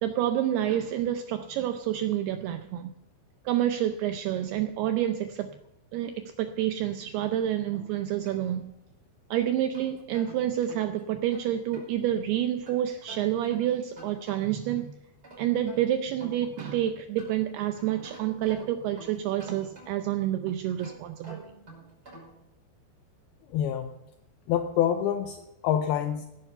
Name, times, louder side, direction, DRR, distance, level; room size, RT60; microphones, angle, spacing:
voice 1, 0.0-2.9 3.5-5.6 5.9-8.7 9.3-15.0 15.4-21.4, right 11 dB, 85° right, 2.3 m, -28 dB
sound 1, 7.7-9.1 9.5-11.9 12.6-14.7 15.0-17.6 18.0-20.2 20.7-22.4, right 1 dB, 20° right, 6.2 m, -49 dB
voice 2, 23.5-23.9 24.5-26.3, left 10 dB, 85° left, 2.2 m, -27 dB
16.5 x 11.0 x 5.7 m
omnidirectional pair, 5.3 m